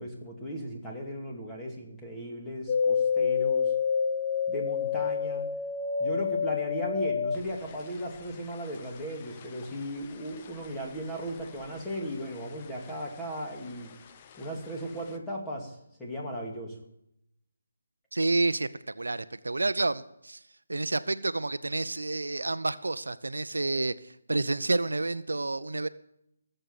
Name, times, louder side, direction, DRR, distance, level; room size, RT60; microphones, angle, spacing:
voice 1, 0.0-3.7 4.5-5.5 6.0-13.9 14.4-16.8, equal, 10° left, -2 dB, 2.6 m, -36 dB
sound 1, 2.7-12.1 12.3-13.2 13.6-14.5 14.9-15.0, left 6 dB, 30° left, 0.9 m, -30 dB
voice 2, 18.1-18.7 19.0-20.4 20.7-25.9, right 2 dB, 80° right, 13 dB, 0.7 m, -29 dB
18.5 x 7.8 x 7.1 m, 0.79 s
figure-of-eight pair, 150°, 0 cm